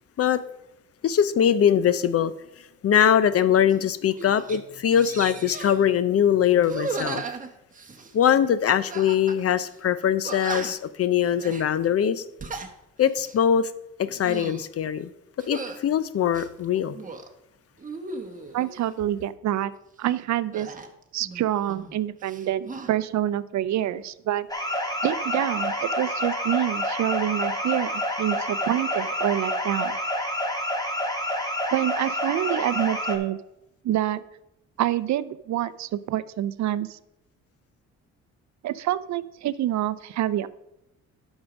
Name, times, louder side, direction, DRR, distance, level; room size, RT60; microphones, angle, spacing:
voice 1, 1.0-2.3 2.8-7.2 8.1-12.2 13.0-13.7 14.0-15.1 15.4-17.0, left 9 dB, 50° left, 0.6 m, -22 dB
sound 1, 3.7-3.9 4.2-4.6 4.9-5.8 6.6-8.1 8.9-9.4 9.7-9.8 10.2-10.9 11.4-11.7 12.2-12.7 13.2-13.4 14.1-14.7 15.4-15.8 16.3-17.3 17.8-18.7 20.5-22.0 22.2-22.9, right 4 dB, 25° right, 1.1 m, -36 dB
voice 2, 18.5-19.7 20.0-20.7 21.1-24.5 25.0-30.0 31.7-33.4 33.8-34.2 34.8-37.0 38.6-40.5, right 12 dB, 65° right, 0.5 m, -27 dB
sound 2, 24.5-33.2, left 1 dB, 10° left, 1.7 m, -28 dB
9.6 x 6.3 x 5.2 m
cardioid pair, 90°, 30 cm